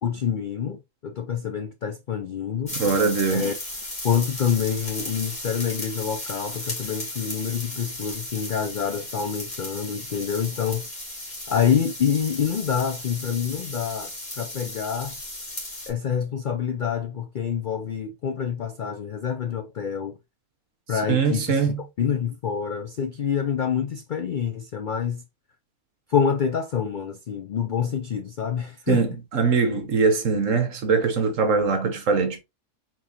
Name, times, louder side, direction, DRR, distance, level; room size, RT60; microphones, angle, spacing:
voice 1, 0.0-2.7 3.3-3.5 4.0-10.9 11.5-14.1 14.4-15.2 15.9-20.2 20.9-25.2 26.1-29.0, left 7 dB, 85° left, 0.4 m, -27 dB
sound 1, 2.7-15.9, left 1 dB, 30° left, 2.4 m, -35 dB
voice 2, 2.7-3.5 21.1-21.8 28.9-32.4, right 5 dB, 60° right, 1.4 m, -22 dB
4.5 x 3.8 x 2.9 m
omnidirectional pair, 1.5 m